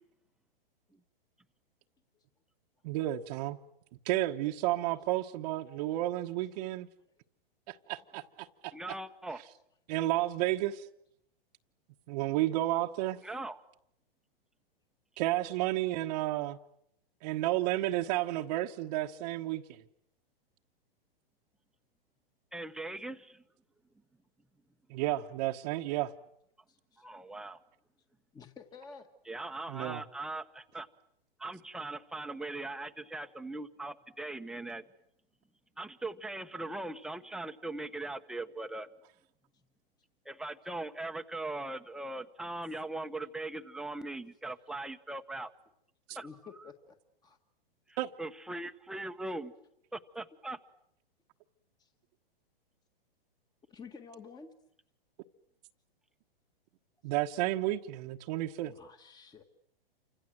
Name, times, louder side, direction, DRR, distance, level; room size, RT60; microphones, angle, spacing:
voice 1, 2.8-3.6 4.0-6.9 7.7-8.7 9.9-10.9 12.1-13.2 15.2-16.6 17.2-19.8 24.9-26.1 29.7-30.0 46.1-46.2 48.0-48.1 57.0-58.7, right 15 dB, 45° right, 1.2 m, -32 dB
voice 2, 8.7-9.4 13.2-13.6 22.5-23.4 27.0-27.6 29.3-30.9 31.4-34.8 35.8-38.9 40.2-45.5 46.1-46.3 47.9-49.5 49.9-50.6, right 2 dB, ahead, 1.1 m, -40 dB
voice 3, 26.7-27.0 28.3-29.1 46.1-47.0 47.2-47.4 51.8-51.9 53.7-54.5 58.7-59.4, left 5 dB, 15° left, 1.6 m, -51 dB
29.5 x 26.0 x 7.8 m
hypercardioid pair, 130°, 30 cm